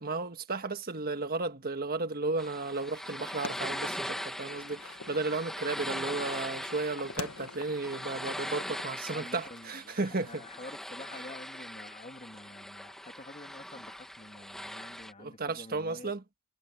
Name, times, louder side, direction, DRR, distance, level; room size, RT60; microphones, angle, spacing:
voice 1, 0.0-10.4 15.2-16.2, right 3 dB, 45° right, 1.5 m, -34 dB
sound 1, 2.4-15.1, equal, ahead, 1.8 m, -41 dB
sound 2, 3.0-8.9, left 4 dB, 85° left, 1.5 m, -46 dB
voice 2, 9.1-16.1, left 2 dB, 35° left, 2.9 m, -48 dB
head